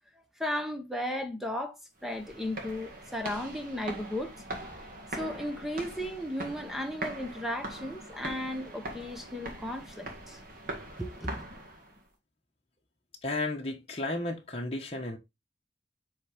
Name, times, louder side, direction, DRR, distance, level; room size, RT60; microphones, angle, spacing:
voice 1, 0.4-1.8 2.0-4.3 5.1-10.4 11.0-11.4, left 1 dB, ahead, 0.9 m, -35 dB
sound 1, 2.0-12.0, right 1 dB, 50° right, 1.9 m, -42 dB
voice 2, 13.2-15.2, left 2 dB, 30° left, 1.1 m, -33 dB
7.5 x 3.8 x 3.4 m
head